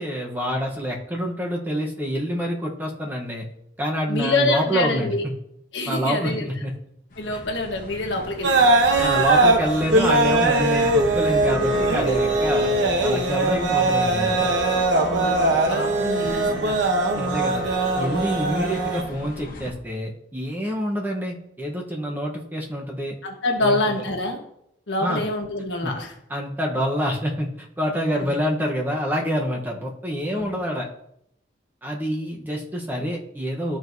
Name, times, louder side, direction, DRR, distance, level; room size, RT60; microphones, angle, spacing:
voice 1, 0.0-3.5 3.8-5.3 5.9-6.7 9.0-12.7 13.0-14.5 17.1-17.7 18.0-23.2 23.6-24.1 25.0-25.2 25.8-25.9 26.3-30.9 31.8-33.8, equal, 10° right, 0 dB, 0.9 m, -27 dB
voice 2, 4.1-5.2 5.7-6.4 7.2-8.7 14.9-16.7 23.2-24.4 24.9-26.1 28.2-28.4 30.4-30.5, left 2 dB, 70° left, 2 dB, 1.3 m, -26 dB
sound 1, 7.1-19.7, left 1 dB, 45° left, 1.0 m, -38 dB
sound 2, 8.4-19.0, right 2 dB, 70° right, 0.9 m, -21 dB
Bowed string instrument, 11.1-16.7, left 1 dB, 10° left, 1.7 m, -38 dB
12.5 x 4.6 x 2.7 m, 0.76 s
head